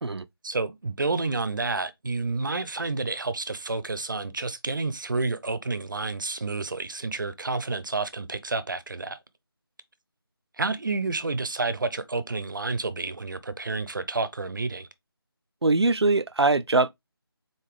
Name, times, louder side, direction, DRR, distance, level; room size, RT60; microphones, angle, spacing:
voice 1, 0.4-9.2 10.6-14.9, right 3 dB, 50° right, 0.7 m, -30 dB
voice 2, 15.6-16.9, right 3 dB, 85° right, 0.5 m, -22 dB
4.0 x 4.0 x 3.2 m
figure-of-eight pair, 160°, 13 cm